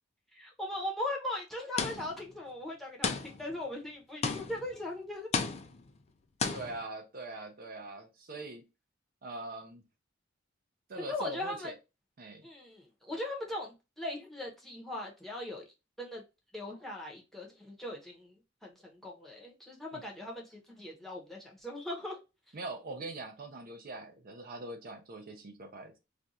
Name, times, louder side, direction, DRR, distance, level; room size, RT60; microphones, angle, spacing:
voice 1, 0.3-5.3 11.0-11.7 12.4-15.6 16.0-16.2 16.5-22.2, left 1 dB, ahead, 0.8 m, -39 dB
sound 1, 1.8-2.3 3.0-3.6 4.2-4.8 5.3-5.9 6.4-6.8, left 5 dB, 35° left, 0.4 m, -33 dB
voice 2, 6.5-8.6 9.2-9.8 10.9-11.7 12.2-12.5 19.9-20.0 22.5-26.0, right 2 dB, 50° right, 0.5 m, -43 dB
2.5 x 2.3 x 4.0 m
head